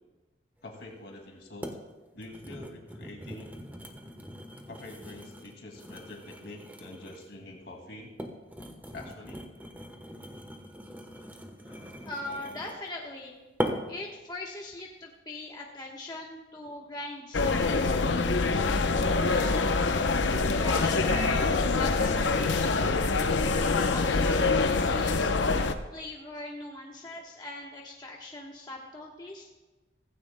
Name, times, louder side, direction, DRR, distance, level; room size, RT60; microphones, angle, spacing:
voice 1, 0.6-1.7 2.1-3.5 4.7-8.2 8.9-9.5 11.6-12.0, left 2 dB, 65° left, 2 dB, 2.3 m, -46 dB
sound 1, 0.8-0.9 1.6-1.8 2.2-7.4 8.0-12.9 13.6-14.0 14.6-14.8, equal, 10° right, 1.0 m, -40 dB
voice 2, 12.0-13.4 13.9-17.9 19.3-19.7 20.6-22.8 23.5-25.4 25.9-29.5, left 2 dB, 25° left, -2 dB, 1.1 m, -40 dB
sound 2, 17.3-25.7, left 3 dB, 85° left, 0.7 m, -25 dB
16.5 x 15.5 x 2.2 m, 1.2 s
head